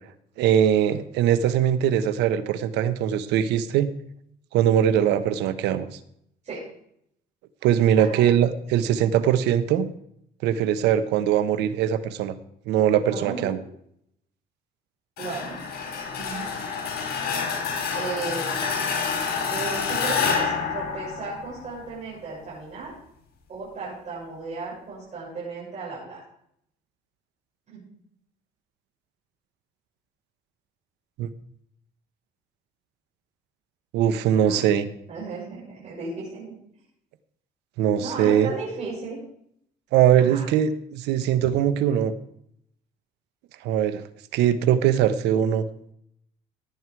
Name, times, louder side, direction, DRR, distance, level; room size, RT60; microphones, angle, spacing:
voice 1, 0.4-3.9 4.5-5.9 7.6-9.9 10.4-12.3 12.7-13.6 31.2-31.3 33.9-34.9 37.8-38.5 39.9-42.1 43.6-44.0 44.3-45.6, right 10 dB, 90° right, 12 dB, 1.2 m, -21 dB
voice 2, 8.0-8.4 13.1-13.6 15.2-15.6 16.2-16.5 17.9-18.7 19.5-22.9 23.5-26.2 27.7-27.9 34.3-34.6 35.1-36.5 38.0-39.2 40.2-40.5, right 4 dB, 45° right, -7 dB, 6.7 m, -35 dB
sound 1, 15.2-21.9, left 5 dB, 65° left, 5.0 m, -28 dB
17.5 x 9.4 x 4.7 m, 0.71 s
cardioid pair, 110°, 17 cm